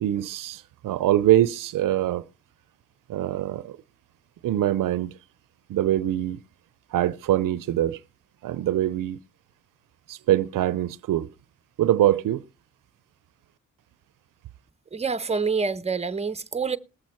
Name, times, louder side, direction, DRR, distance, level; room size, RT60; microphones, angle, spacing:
voice 1, 0.0-2.2 3.1-3.8 4.4-5.1 5.7-6.4 6.9-8.0 8.4-9.2 10.1-11.3 11.8-12.4, right 13 dB, 80° right, 0.6 m, -23 dB
voice 2, 14.9-16.8, right 5 dB, 20° right, 0.8 m, -27 dB
19.5 x 7.4 x 4.3 m
cardioid pair, 55°, 32 cm